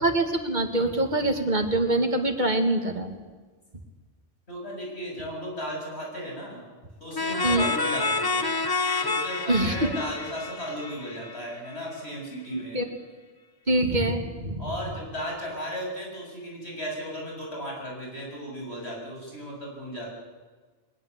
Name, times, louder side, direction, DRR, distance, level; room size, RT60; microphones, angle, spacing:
voice 1, 0.0-3.2 7.4-7.7 9.5-9.9 12.5-12.9 13.7-14.7, right 2 dB, 45° right, 6 dB, 2.3 m, -24 dB
voice 2, 4.5-6.6 7.0-8.6 9.0-12.8 14.6-20.1, equal, 90° left, -1 dB, 7.4 m, -35 dB
sound 1, 7.1-11.7, left 3 dB, 25° left, 0.9 m, -28 dB
22.0 x 20.5 x 8.2 m, 1.4 s
omnidirectional pair, 1.1 m